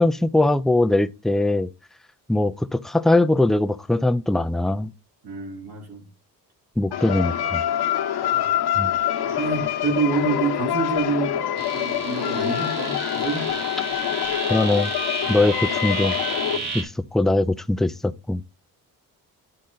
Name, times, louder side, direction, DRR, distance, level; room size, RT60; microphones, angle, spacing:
voice 1, 0.0-1.7 2.3-4.9 6.8-7.6 8.8-8.9 14.5-14.9 15.3-16.1 16.7-18.4, left 2 dB, ahead, 0.3 m, -21 dB
voice 2, 5.2-6.1 8.3-8.5 9.4-11.5 11.7-13.5 15.2-15.5 16.5-16.8, right 4 dB, 75° right, 4.1 m, -27 dB
sound 1, 6.9-16.6, left 11 dB, 85° left, 1.3 m, -25 dB
sound 2, 11.6-16.8, right 3 dB, 45° right, 2.9 m, -32 dB
10.0 x 3.8 x 3.9 m
cardioid pair, 115°, 37 cm